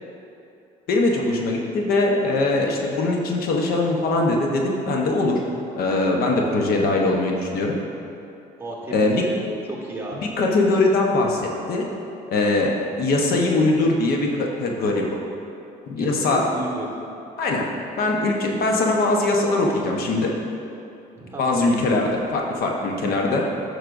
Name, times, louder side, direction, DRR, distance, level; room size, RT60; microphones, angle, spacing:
voice 1, 0.9-5.4 5.8-7.8 8.9-9.3 10.2-11.8 12.3-15.0 15.9-16.5 17.4-17.7 18.0-20.3 21.4-23.4, left 2 dB, 65° left, 0 dB, 1.0 m, -21 dB
voice 2, 8.6-9.4 9.7-10.3 16.0-16.9 21.2-21.7, right 2 dB, 15° right, -3 dB, 1.5 m, -33 dB
10.5 x 6.5 x 2.6 m, 2.7 s
cardioid pair, 110°, 17 cm